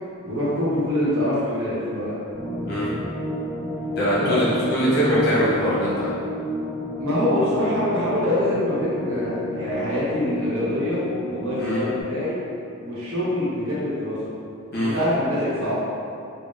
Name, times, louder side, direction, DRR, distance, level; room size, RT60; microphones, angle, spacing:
voice 1, 0.2-2.2 4.2-4.3 7.0-12.4 12.8-14.2 14.8-15.8, left 1 dB, 75° right, -8 dB, 0.9 m, -24 dB
sound 1, 2.3-12.0, equal, 5° right, 0.7 m, -31 dB
voice 2, 3.9-6.1 11.6-11.8 14.7-14.9, equal, 45° left, -9 dB, 0.9 m, -22 dB
3.7 x 2.0 x 2.5 m, 2.6 s
head